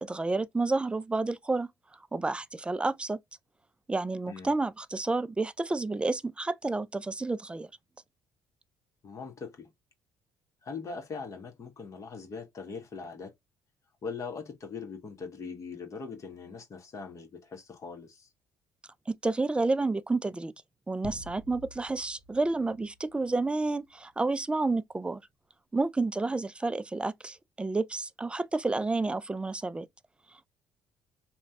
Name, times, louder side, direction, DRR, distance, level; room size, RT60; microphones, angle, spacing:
voice 1, 0.0-1.7 2.1-3.2 3.9-7.7 19.1-20.5 20.9-25.2 25.7-29.9, right 3 dB, 15° right, 0.3 m, -30 dB
voice 2, 9.0-9.7 10.6-13.3 14.0-18.3, left 5 dB, 45° left, 1.1 m, -41 dB
sound 1, 21.0-23.9, left 2 dB, 65° left, 0.9 m, -49 dB
3.0 x 2.3 x 2.6 m
supercardioid pair, 65°, 7 cm